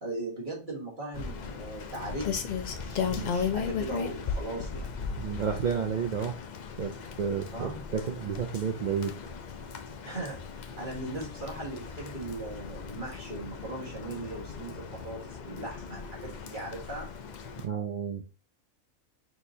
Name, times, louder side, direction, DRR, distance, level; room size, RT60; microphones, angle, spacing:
voice 1, 0.0-4.9 7.5-7.8 10.0-17.1, right 2 dB, 40° right, -3 dB, 1.6 m, -39 dB
Rain, 1.1-17.7, left 6 dB, 85° left, 0.4 m, -37 dB
voice 2, 5.2-6.3 6.8-9.1 17.6-18.2, right 7 dB, 85° right, 4 dB, 0.4 m, -31 dB
6.1 x 3.0 x 2.7 m, 0.33 s
omnidirectional pair, 1.4 m